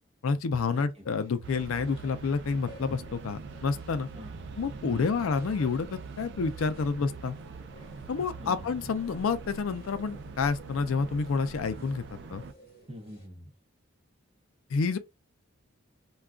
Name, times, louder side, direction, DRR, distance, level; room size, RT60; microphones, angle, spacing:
voice 1, 0.2-4.1 4.6-7.4 8.1-12.0 12.3-12.4 14.7-15.0, left 5 dB, 70° left, 0.4 m, -29 dB
sound 1, 0.9-13.3, equal, 25° left, 1.2 m, -54 dB
sound 2, 1.4-12.5, right 4 dB, 55° right, 0.3 m, -44 dB
voice 2, 4.1-4.6 4.9-5.3 8.4-8.8 12.9-13.5, equal, 30° right, 0.8 m, -44 dB
2.3 x 2.3 x 3.6 m
head